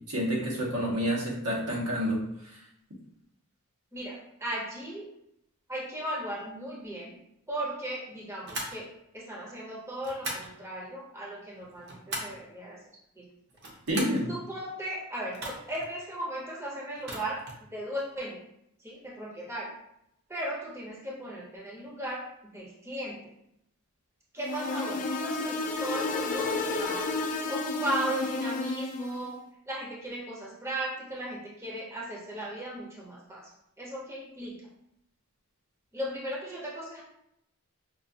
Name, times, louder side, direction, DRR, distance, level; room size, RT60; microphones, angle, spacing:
voice 1, 0.1-2.2 13.9-14.3, equal, 90° right, -3 dB, 1.2 m, -28 dB
voice 2, 3.9-5.1 5.7-7.1 7.5-8.9 9.1-12.8 13.2-13.3 14.3-17.4 17.7-18.4 18.8-19.7 20.3-22.3 22.5-23.3 24.3-27.1 27.5-29.4 29.7-33.5 33.8-34.6 35.9-37.0, right 1 dB, 10° right, -4 dB, 0.6 m, -36 dB
sound 1, 8.5-8.8 10.0-10.5 11.6-12.4 13.5-14.3 15.3-15.9 17.0-17.6, right 1 dB, 50° right, 0.7 m, -38 dB
sound 2, 24.4-29.2, left 3 dB, 35° left, 0.3 m, -31 dB
5.2 x 2.3 x 2.7 m, 0.77 s
head